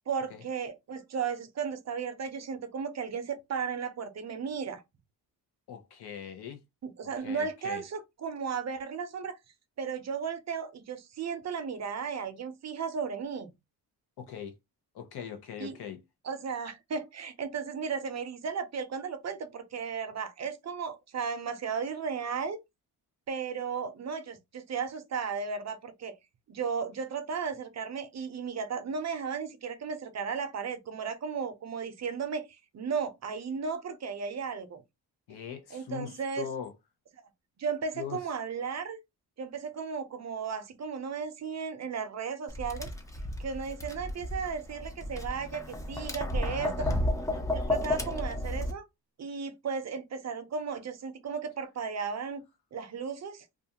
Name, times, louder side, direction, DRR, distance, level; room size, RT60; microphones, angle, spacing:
voice 1, 0.1-4.8 6.8-9.4 9.8-13.5 15.6-15.8 16.2-22.6 23.3-26.1 26.5-32.4 32.7-34.8 35.7-36.5 37.6-39.0 39.4-42.9 43.4-46.7 47.5-48.8 49.2-52.4 52.7-53.5, right 6 dB, 45° right, 0.6 m, -35 dB
voice 2, 5.7-6.6 7.2-7.8 14.2-14.5 14.9-16.0 35.3-36.7 38.0-38.2 46.5-47.0, left 8 dB, 75° left, 0.8 m, -40 dB
Tap, 42.5-48.7, left 1 dB, 10° left, 0.4 m, -32 dB
2.5 x 2.3 x 2.8 m
cardioid pair, 110°, 39 cm